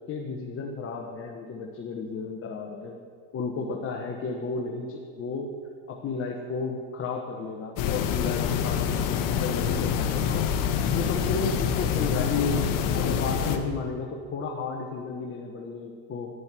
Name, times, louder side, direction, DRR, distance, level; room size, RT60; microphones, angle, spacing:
voice 1, 0.1-3.0 3.3-5.5 5.9-10.4 10.9-12.6 12.9-16.3, left 4 dB, 35° left, 1 dB, 1.2 m, -33 dB
sound 1, 7.8-13.6, left 8 dB, 60° left, 1.2 m, -26 dB
10.5 x 9.5 x 6.0 m, 2.1 s
supercardioid pair, 120°, 38 cm